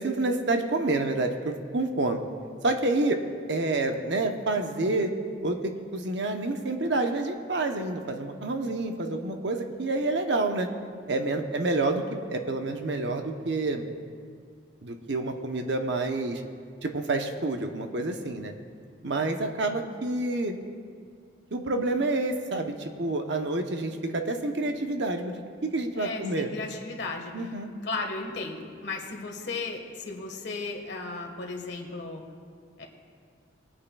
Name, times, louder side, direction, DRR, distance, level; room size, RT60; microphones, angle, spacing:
voice 1, 0.0-2.2 2.6-3.2 3.5-5.1 5.4-10.7 11.1-13.9 14.8-16.4 16.8-18.5 19.0-20.6 21.5-26.5 27.3-27.7, right 2 dB, 65° right, 5 dB, 0.8 m, -28 dB
voice 2, 25.9-27.3 27.8-32.2 32.8-32.9, left 3 dB, 65° left, 2 dB, 1.4 m, -35 dB
21.0 x 8.7 x 2.3 m, 2.2 s
head